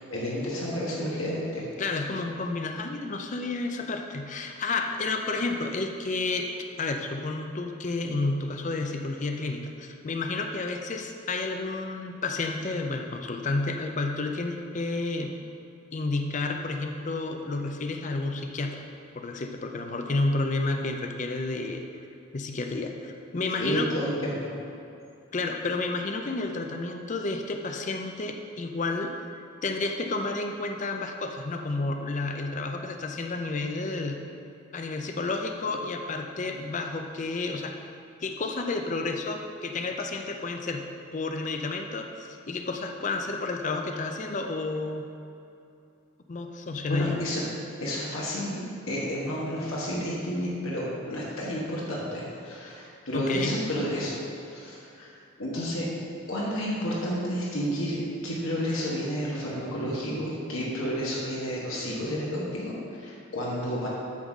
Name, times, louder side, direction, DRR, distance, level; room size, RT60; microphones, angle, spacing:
voice 1, 0.0-1.6 23.6-24.5 46.9-47.4 47.8-54.2 54.4-55.1 55.4-55.9 56.3-58.0 58.2-63.9, equal, 75° left, -5 dB, 1.4 m, -31 dB
voice 2, 1.8-6.5 6.8-15.3 15.9-18.8 19.1-21.8 22.3-23.9 25.3-29.1 29.6-34.2 34.7-37.7 38.2-40.9 41.1-45.1 46.3-47.2 53.1-53.5, left 3 dB, 35° left, 4 dB, 0.4 m, -31 dB
8.3 x 4.1 x 6.1 m, 2.7 s
head